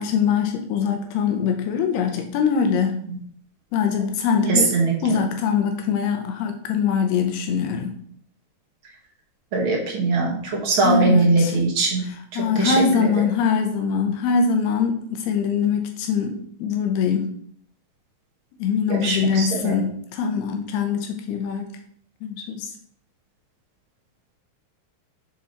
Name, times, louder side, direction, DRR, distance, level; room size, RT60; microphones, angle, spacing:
voice 1, 0.0-3.1 3.7-4.7 5.0-8.0 10.8-11.6 12.0-17.3 18.6-21.7 22.2-22.7, left 6 dB, 80° left, 4 dB, 2.6 m, -23 dB
voice 2, 4.5-4.9 9.5-12.0 12.6-13.1 19.0-19.8, right 3 dB, 60° right, -2 dB, 1.3 m, -21 dB
7.1 x 4.7 x 4.2 m, 0.62 s
omnidirectional pair, 4.8 m